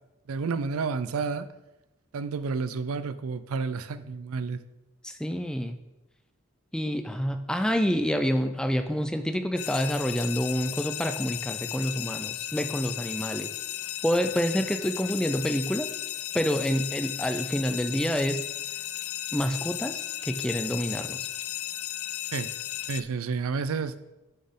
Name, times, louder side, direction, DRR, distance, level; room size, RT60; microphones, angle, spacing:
voice 1, 0.3-1.5 2.1-4.6 22.3-22.5 22.9-23.9, right 5 dB, 85° right, 13 dB, 0.4 m, -30 dB
voice 2, 5.0-5.8 6.7-13.5 14.0-15.9 16.3-18.4 19.3-21.3, equal, 5° left, 7 dB, 0.4 m, -28 dB
sound 1, 9.6-23.0, left 14 dB, 80° left, 0.3 m, -35 dB
11.0 x 4.3 x 3.7 m, 1.0 s
head